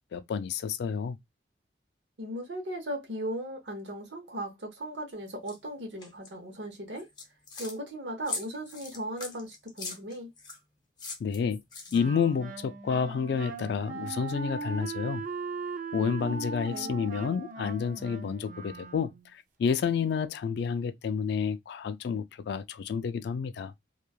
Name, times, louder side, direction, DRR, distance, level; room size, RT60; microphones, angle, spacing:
voice 1, 0.1-1.2 11.2-11.6 11.9-15.2 15.9-23.7, left 6 dB, 65° left, 0.3 m, -30 dB
voice 2, 2.2-7.1 7.6-10.3 16.2-16.4 16.7-16.9, right 1 dB, 70° right, 0.9 m, -37 dB
sound 1, 5.5-5.6 6.0-6.3 7.0-7.8 8.3-10.6 11.0-12.2, left 4 dB, 25° left, 0.8 m, -40 dB
Wind instrument woodwind instrument, 11.9-19.3, right 4 dB, 45° right, 0.5 m, -39 dB
3.0 x 2.3 x 2.2 m
head